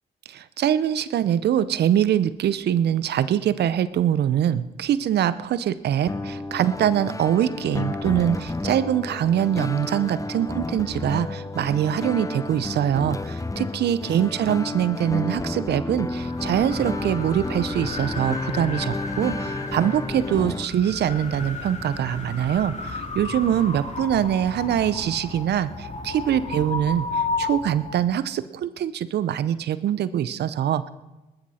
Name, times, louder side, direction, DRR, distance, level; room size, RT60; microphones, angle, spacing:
voice 1, 0.3-30.9, right 10 dB, 70° right, 15 dB, 0.7 m, -23 dB
sound 1, 6.1-20.7, left 2 dB, 20° left, 0.7 m, -31 dB
sound 2, 15.9-28.1, left 3 dB, 40° left, 2.9 m, -33 dB
20.0 x 13.0 x 4.3 m, 1.1 s
supercardioid pair, 50°, 18 cm